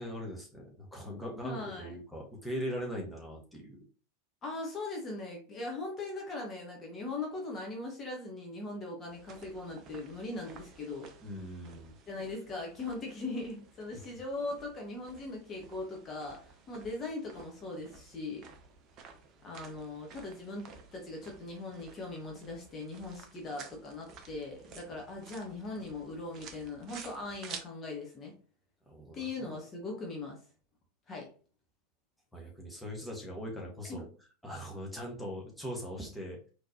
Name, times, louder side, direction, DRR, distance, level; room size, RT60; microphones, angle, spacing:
voice 1, 0.0-3.8 11.2-11.9 28.9-29.5 32.3-34.1 34.4-36.4, equal, 5° left, -2 dB, 1.3 m, -40 dB
voice 2, 1.3-1.9 4.4-11.1 12.1-18.5 19.4-28.3 29.1-30.4 31.1-31.3 33.9-34.1, left 2 dB, 25° left, -1 dB, 1.2 m, -40 dB
sound 1, 9.1-27.6, right 5 dB, 35° right, 0.7 m, -53 dB
4.2 x 3.2 x 2.7 m, 0.38 s
figure-of-eight pair, 85°, 0 cm